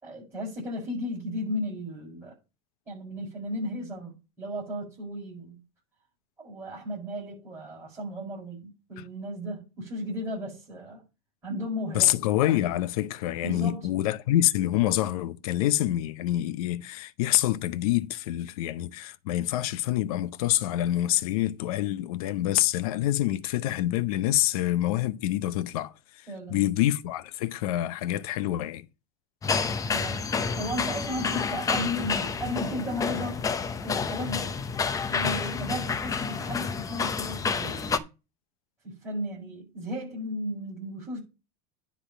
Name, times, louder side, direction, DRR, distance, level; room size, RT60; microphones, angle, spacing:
voice 1, 0.0-2.4 2.9-5.6 6.4-11.0 11.4-12.2 13.4-13.9 26.3-26.6 29.9-33.5 33.8-38.1 38.8-41.2, equal, 10° right, 6.9 m, -35 dB
voice 2, 11.9-25.9 26.5-28.9, left 14 dB, 80° left, 0.8 m, -26 dB
sound 1, 29.4-38.0, left 5 dB, 20° left, 0.7 m, -29 dB
10.0 x 3.6 x 7.2 m
supercardioid pair, 140°, 18 cm